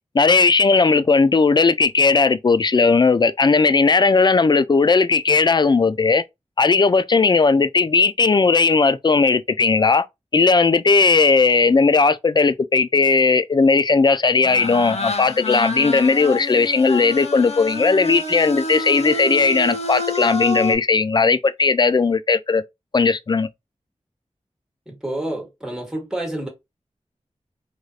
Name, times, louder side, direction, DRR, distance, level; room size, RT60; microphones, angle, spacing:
voice 1, 0.1-6.2 6.6-10.0 10.3-22.6 22.9-23.5, left 4 dB, 35° left, 0.4 m, -17 dB
sound 1, 14.4-20.7, left 2 dB, 55° left, 0.9 m, -28 dB
voice 2, 24.9-26.5, right 1 dB, 5° right, 1.3 m, -29 dB
3.2 x 2.6 x 2.4 m
cardioid pair, 40°, 13 cm